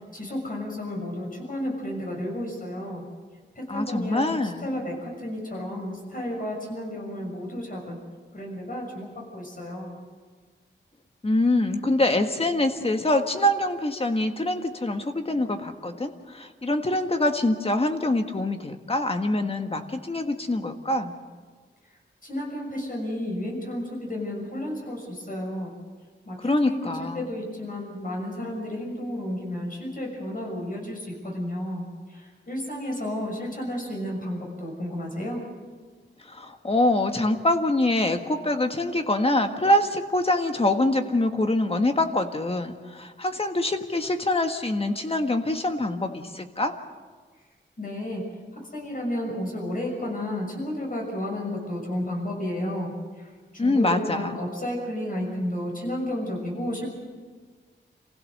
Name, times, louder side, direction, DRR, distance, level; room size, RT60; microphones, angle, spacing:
voice 1, 0.0-3.0 3.5-8.0 8.3-10.0 22.2-25.7 26.3-35.4 47.8-48.3 48.7-52.9 53.2-53.3 53.5-56.9, left 1 dB, 45° left, 0 dB, 6.5 m, -32 dB
voice 2, 3.7-4.7 11.2-21.1 26.4-27.3 36.2-46.7 53.6-54.4, left 1 dB, 30° left, 5 dB, 1.6 m, -25 dB
28.0 x 16.0 x 6.7 m, 1.5 s
wide cardioid pair, 120°, 19 cm